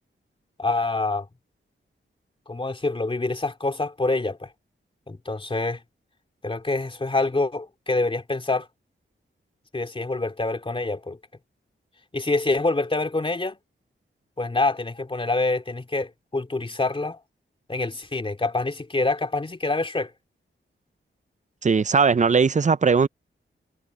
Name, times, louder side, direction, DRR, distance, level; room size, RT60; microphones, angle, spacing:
voice 1, 0.6-1.3 2.5-4.5 5.1-5.8 6.4-8.7 9.7-11.2 12.1-13.6 14.4-17.2 17.7-20.1, left 2 dB, 25° left, 2.9 m, -26 dB
voice 2, 21.6-23.1, right 5 dB, 35° right, 0.5 m, -19 dB
wide cardioid pair, 140°, 21 cm